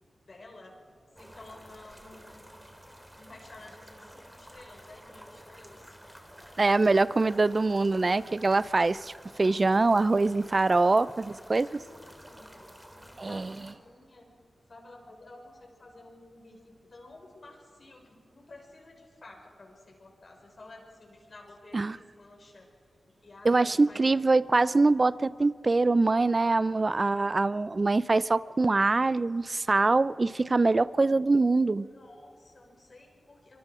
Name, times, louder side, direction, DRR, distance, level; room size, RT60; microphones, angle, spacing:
voice 1, 0.3-0.7 1.2-2.5 3.2-6.0 11.5-12.5 12.9-14.3 14.7-22.7 23.2-24.0 31.8-33.6, left 2 dB, 55° left, 0 dB, 5.7 m, -52 dB
sound 1, 1.2-13.7, equal, 5° right, 3.3 m, -51 dB
voice 2, 6.6-9.1 9.4-11.7 13.2-13.6 21.7-22.0 23.4-31.9, right 3 dB, 45° right, 18 dB, 0.5 m, -24 dB
24.5 x 24.0 x 5.0 m, 2.4 s
cardioid pair, 50°, 0 cm